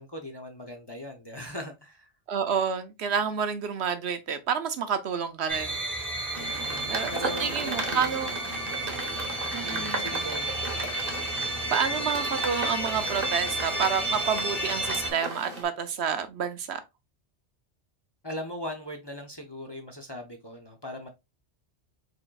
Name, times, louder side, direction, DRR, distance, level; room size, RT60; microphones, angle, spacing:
voice 1, 0.0-2.1 6.3-8.2 9.6-10.6 18.2-21.1, left 1 dB, 25° left, 0.6 m, -39 dB
voice 2, 2.3-5.8 6.2-6.6 6.9-7.1 7.4-8.3 9.5-10.1 11.7-16.8, right 7 dB, 70° right, 0.9 m, -29 dB
sound 1, 5.5-15.1, right 1 dB, ahead, 1.4 m, -32 dB
sound 2, 6.3-15.6, right 3 dB, 55° right, 1.2 m, -36 dB
4.8 x 4.3 x 2.3 m
omnidirectional pair, 1.2 m